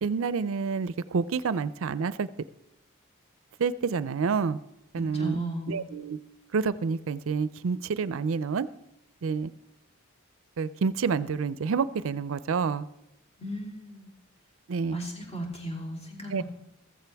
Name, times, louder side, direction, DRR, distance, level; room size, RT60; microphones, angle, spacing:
voice 1, 0.0-2.3 3.6-4.6 4.9-5.4 5.7-6.2 6.5-8.7 9.2-9.5 10.6-12.9 14.7-15.0 16.3-16.4, right 5 dB, 70° right, 16 dB, 0.4 m, -28 dB
voice 2, 5.0-5.8 13.4-14.1 14.8-16.4, right 1 dB, 30° left, -2 dB, 3.4 m, -36 dB
15.0 x 14.5 x 3.4 m, 0.85 s
head